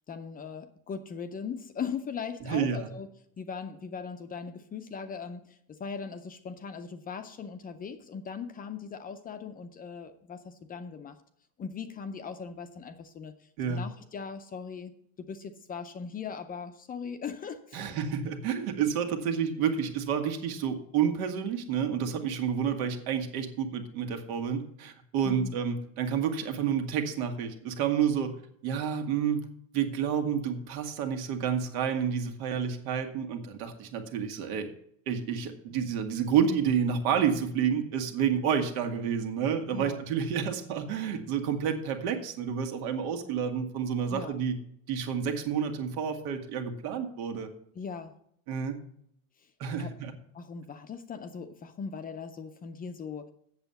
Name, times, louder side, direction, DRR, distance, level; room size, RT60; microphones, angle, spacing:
voice 1, 0.1-3.1 3.4-11.2 11.6-13.3 13.7-14.9 15.3-17.9 25.2-25.5 39.7-40.0 44.1-44.3 47.8-48.1 49.8-49.9 50.3-53.3, left 6 dB, 20° left, 9 dB, 0.5 m, -39 dB
voice 2, 2.4-2.9 13.6-13.8 17.7-28.3 28.6-29.4 29.7-34.7 35.1-44.6 44.9-47.5 48.5-48.8 49.6-50.1, right 7 dB, 85° right, 5 dB, 1.8 m, -29 dB
8.0 x 7.1 x 6.9 m, 0.70 s
supercardioid pair, 145°, 42 cm